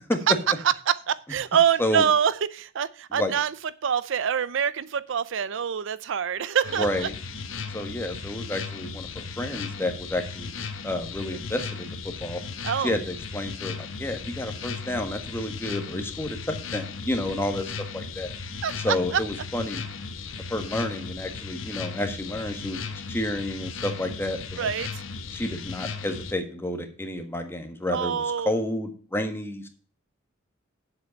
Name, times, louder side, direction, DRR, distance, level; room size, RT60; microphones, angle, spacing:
voice 1, 0.9-3.5 3.8-7.1 12.6-12.9 18.6-19.2 24.6-25.0 27.9-28.5, right 8 dB, 65° right, 17 dB, 0.5 m, -25 dB
sound 1, 6.6-26.3, left 4 dB, 75° left, 1.2 m, -36 dB
voice 2, 6.8-7.1 7.7-12.4 12.8-18.3 18.8-19.8 20.5-22.8 23.1-24.7 25.3-29.7, left 1 dB, 10° left, 6 dB, 1.5 m, -30 dB
8.2 x 7.8 x 5.2 m, 0.41 s
head